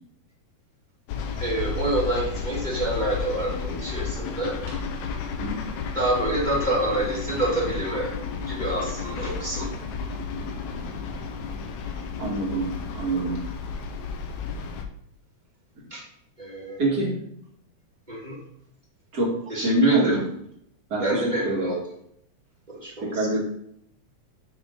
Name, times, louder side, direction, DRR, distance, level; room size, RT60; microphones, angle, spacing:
sound 1, 1.1-14.8, left 5 dB, 75° left, 2.2 m, -32 dB
voice 1, 1.4-4.6 5.9-8.1 8.5-9.7 15.9-16.0 16.4-16.8 18.1-18.4 19.5-20.2 21.0-21.8 22.7-23.4, right 1 dB, 15° right, -4 dB, 2.3 m, -27 dB
voice 2, 5.3-5.8 12.2-13.4 15.8-15.9 16.8-17.2 19.1-20.2 20.9-21.7 23.0-23.4, right 1 dB, 30° right, -3 dB, 2.5 m, -25 dB
9.2 x 6.3 x 3.9 m, 0.72 s
omnidirectional pair, 3.5 m